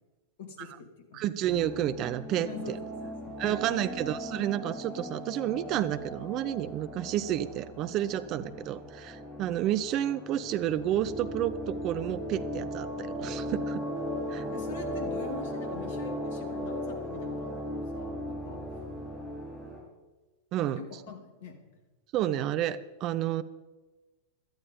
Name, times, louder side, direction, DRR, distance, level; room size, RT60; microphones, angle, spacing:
voice 1, 0.4-1.2 2.4-4.2 8.3-8.5 14.5-18.8 20.7-21.6 22.2-22.5, left 4 dB, 55° left, 7 dB, 2.3 m, -45 dB
voice 2, 1.1-2.8 3.4-13.8 14.3-14.4 20.5-20.8 22.1-23.4, right 12 dB, 35° right, 14 dB, 0.7 m, -30 dB
sound 1, 1.4-19.8, equal, 10° left, 6.0 m, -37 dB
17.0 x 12.0 x 5.2 m, 1.2 s
figure-of-eight pair, 90°, 0 cm